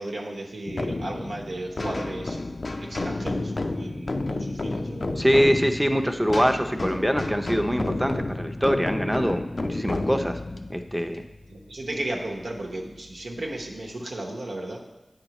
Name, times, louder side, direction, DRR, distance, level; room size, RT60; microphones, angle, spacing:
voice 1, 0.0-2.4 2.8-5.2 11.5-14.8, right 1 dB, 85° right, -1 dB, 1.0 m, -34 dB
sound 1, 0.7-12.1, left 2 dB, 60° left, 0.4 m, -31 dB
voice 2, 5.2-10.4 10.7-11.2, equal, 5° right, 6 dB, 0.6 m, -24 dB
9.3 x 5.3 x 3.0 m, 1.0 s
cardioid pair, 40°, 0 cm